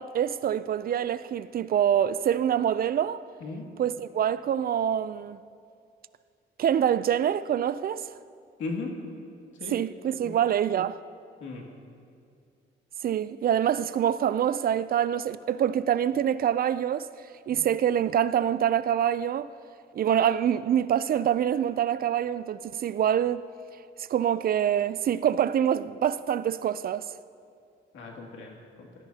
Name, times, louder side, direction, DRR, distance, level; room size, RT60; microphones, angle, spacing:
voice 1, 0.0-3.2 3.8-5.4 6.6-8.1 9.7-11.0 13.0-17.1 17.5-19.5 19.9-23.4 24.1-27.1, right 9 dB, 50° right, 0.4 m, -25 dB
voice 2, 8.6-8.9 9.6-9.8 10.2-10.4 11.4-11.7 17.5-17.6 27.9-28.9, left 3 dB, 75° left, 2.4 m, -37 dB
19.5 x 12.5 x 2.8 m
cardioid pair, 90°, 20 cm